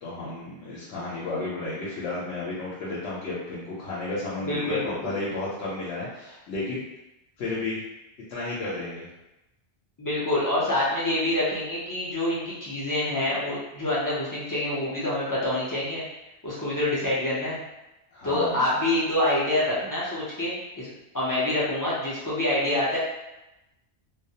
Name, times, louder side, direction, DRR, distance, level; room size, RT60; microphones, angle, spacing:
voice 1, 0.0-6.8 7.4-7.8 8.3-9.1 18.1-18.6, left 2 dB, 80° left, -7 dB, 0.9 m, -32 dB
voice 2, 4.4-5.1 10.0-16.0 16.4-17.6 18.2-23.0, left 1 dB, 30° left, -8 dB, 0.4 m, -26 dB
2.3 x 2.0 x 2.7 m, 0.96 s
omnidirectional pair, 1.1 m